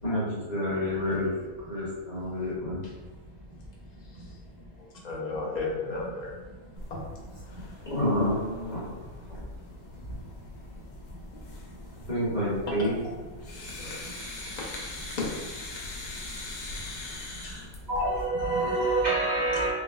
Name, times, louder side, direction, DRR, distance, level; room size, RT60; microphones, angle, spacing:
voice 1, 0.0-1.3 1.7-2.8 7.9-8.8 12.1-12.9, left 1 dB, 35° left, 1.0 m, -28 dB
voice 2, 3.8-7.9 9.7-12.1 12.7-17.9, left 3 dB, 65° left, 0.4 m, -40 dB
sound 1, 6.8-18.3, left 2 dB, 85° left, 1.0 m, -42 dB
voice 3, 17.9-19.7, right 2 dB, 65° right, 0.4 m, -26 dB
3.3 x 2.0 x 2.3 m
omnidirectional pair, 1.4 m